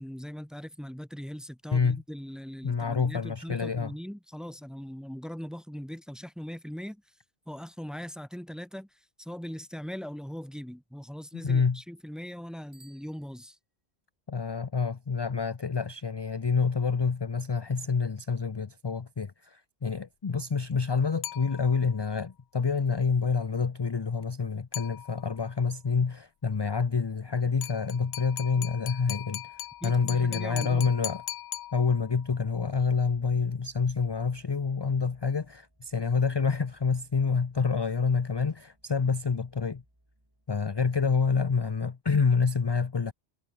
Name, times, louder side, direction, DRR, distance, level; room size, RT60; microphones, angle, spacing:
voice 1, 0.0-7.0 7.5-13.6 29.8-30.9, equal, ahead, 1.1 m, -40 dB
voice 2, 2.6-3.9 11.4-11.8 14.3-29.5 29.8-31.2 31.7-39.8 40.5-43.1, left 5 dB, 30° left, 0.5 m, -27 dB
Bicycle bell, 12.7-14.0, right 2 dB, 80° right, 5.5 m, -61 dB
sound 1, 21.2-22.0 24.7-25.5 27.6-32.3, left 13 dB, 85° left, 0.8 m, -40 dB
sound 2, 29.3-40.7, right 1 dB, 20° right, 4.8 m, -65 dB
omnidirectional pair, 1.1 m